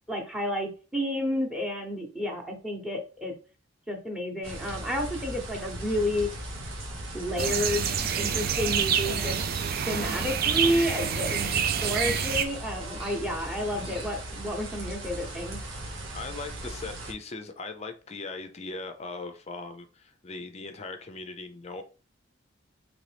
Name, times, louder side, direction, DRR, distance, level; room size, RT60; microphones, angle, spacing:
voice 1, 0.1-3.3 3.9-6.3 7.1-9.4 9.9-15.6, left 1 dB, 5° right, 1.0 m, -30 dB
sound 1, 4.4-17.1, right 1 dB, 80° right, 1.1 m, -38 dB
sound 2, 7.4-12.5, right 8 dB, 50° right, 0.4 m, -27 dB
Human voice, 9.0-11.6 12.0-14.5, left 1 dB, 30° right, 1.0 m, -43 dB
voice 2, 11.3-11.7 15.7-15.8 16.1-21.8, left 3 dB, 35° left, 0.5 m, -39 dB
3.9 x 3.1 x 3.3 m
head